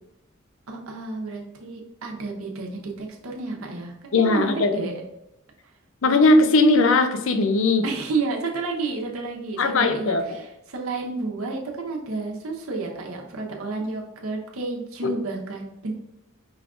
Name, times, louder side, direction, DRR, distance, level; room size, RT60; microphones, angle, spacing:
voice 1, 0.7-5.0 7.8-15.9, right 3 dB, 90° right, 0 dB, 0.9 m, -31 dB
voice 2, 4.1-4.7 6.0-7.8 9.6-10.4 15.0-15.1, left 2 dB, 70° left, 7 dB, 0.5 m, -19 dB
5.1 x 2.4 x 3.6 m, 0.86 s
head